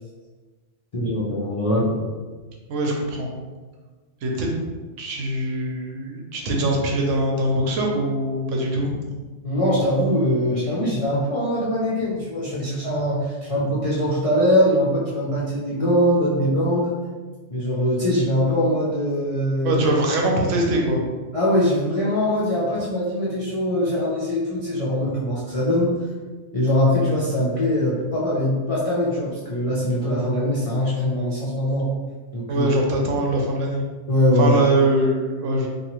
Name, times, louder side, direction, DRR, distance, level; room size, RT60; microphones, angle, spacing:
voice 1, 0.9-2.0 9.4-17.0 17.5-19.8 21.3-26.0 26.5-31.9 32.3-32.7 34.1-34.6, left 1 dB, 45° left, -9 dB, 0.4 m, -22 dB
voice 2, 2.7-3.3 4.2-4.5 5.0-9.0 19.6-21.0 32.5-33.8 34.4-35.7, right 1 dB, 85° right, 0 dB, 1.0 m, -22 dB
2.7 x 2.3 x 2.9 m, 1.3 s
omnidirectional pair, 1.3 m